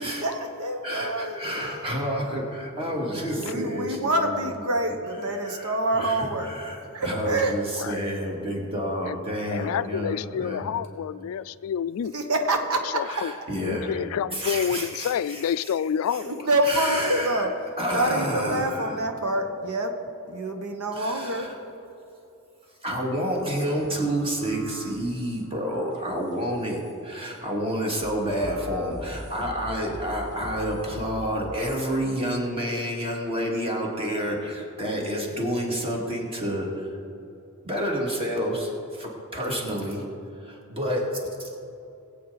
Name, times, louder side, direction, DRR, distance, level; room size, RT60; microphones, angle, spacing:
voice 1, 0.0-1.4 3.3-6.5 6.9-7.5 12.1-13.0 16.2-17.5 17.9-19.9 20.3-21.5, right 1 dB, 80° right, 5 dB, 1.2 m, -26 dB
voice 2, 0.8-4.5 5.5-10.6 13.1-13.9 14.3-15.1 16.6-17.5 17.8-19.0 20.9-21.5 22.8-36.9 37.6-40.0 40.4-41.6, equal, 25° right, -1 dB, 2.3 m, -29 dB
voice 3, 7.8-8.1 9.0-9.2 9.5-12.1 12.8-16.5, left 8 dB, 70° left, 17 dB, 0.3 m, -29 dB
sound 1, 23.7-26.9 27.7-31.5, equal, 55° right, 2.0 m, -42 dB
20.5 x 8.3 x 4.0 m, 2.7 s
head